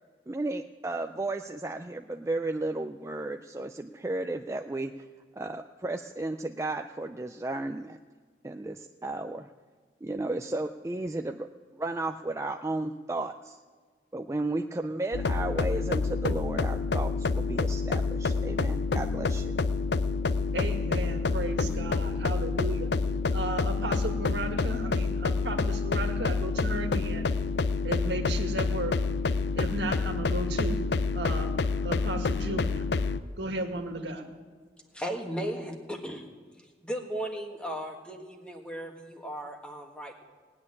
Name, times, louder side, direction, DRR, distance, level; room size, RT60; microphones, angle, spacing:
voice 1, 0.3-4.9 5.3-8.0 8.4-9.5 10.0-11.5 11.7-13.6 14.1-19.6, right 2 dB, 15° right, 6 dB, 0.3 m, -34 dB
sound 1, 15.1-33.2, left 4 dB, 75° left, 0.5 m, -28 dB
voice 2, 20.5-22.9 23.3-27.3 27.8-28.9 29.5-30.8 31.1-31.5 31.8-32.8 33.4-34.2, right 2 dB, 80° right, 4 dB, 1.8 m, -34 dB
voice 3, 34.9-36.3 36.8-40.1, right 1 dB, 5° left, 2 dB, 1.4 m, -36 dB
18.5 x 6.5 x 9.8 m, 1.5 s
head